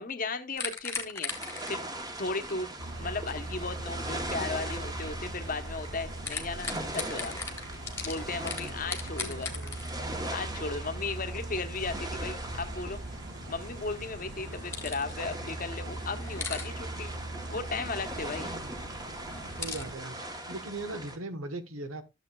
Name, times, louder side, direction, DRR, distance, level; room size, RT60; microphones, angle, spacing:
voice 1, 0.0-1.3 1.7-1.8 2.2-2.7 3.0-7.3 8.0-9.5 10.3-13.0 13.5-17.1 17.5-18.5, left 3 dB, 40° left, 0.9 m, -36 dB
sound 1, 0.6-5.9 6.1-9.9 14.2-15.2 15.5-15.6 16.0-16.7 19.2-19.8, left 4 dB, 10° left, 1.2 m, -39 dB
sound 2, 1.3-21.2, right 1 dB, 20° right, 1.0 m, -41 dB
sound 3, 2.8-19.9, right 1 dB, 55° right, 1.5 m, -40 dB
voice 2, 8.6-9.7 11.6-11.7 18.5-18.8 19.6-22.0, right 2 dB, 85° right, 1.2 m, -40 dB
12.0 x 7.1 x 2.3 m
head